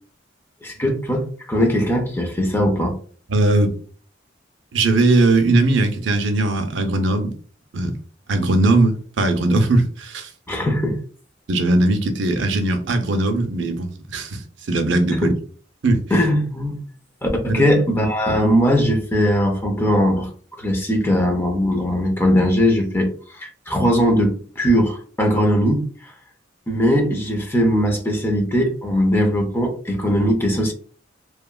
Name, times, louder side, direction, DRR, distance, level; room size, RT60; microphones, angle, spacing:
voice 1, 0.6-3.0 10.5-11.0 15.1-15.3 16.1-16.8 17.2-20.3 20.6-26.1 26.7-30.7, equal, 10° left, 0.5 m, -20 dB
voice 2, 3.3-3.7 4.7-7.3 7.7-8.0 8.3-10.3 11.5-14.4 14.7-15.3 15.8-16.0 17.5-17.6, right 2 dB, 70° right, 0.5 m, -19 dB
2.8 x 2.3 x 2.2 m
head